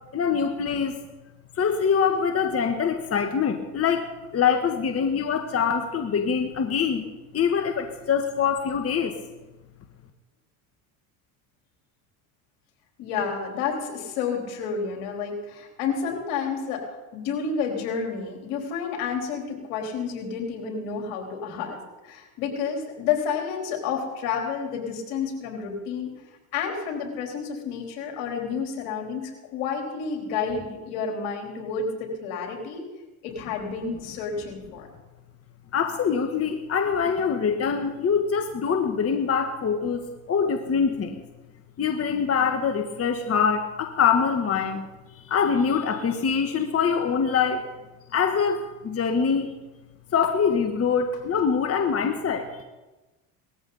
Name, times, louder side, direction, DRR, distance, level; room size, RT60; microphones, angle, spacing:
voice 1, 0.1-1.0 1.6-7.0 7.3-9.1 35.7-41.3 41.8-44.9 45.1-47.7 48.1-49.6 50.1-52.6, left 6 dB, 35° left, 6 dB, 1.4 m, -24 dB
voice 2, 13.0-16.9 17.1-26.1 26.5-29.2 29.5-32.8 33.2-34.9, left 6 dB, 75° left, 1 dB, 3.9 m, -30 dB
19.0 x 14.0 x 4.1 m, 1.1 s
supercardioid pair, 85°, 44 cm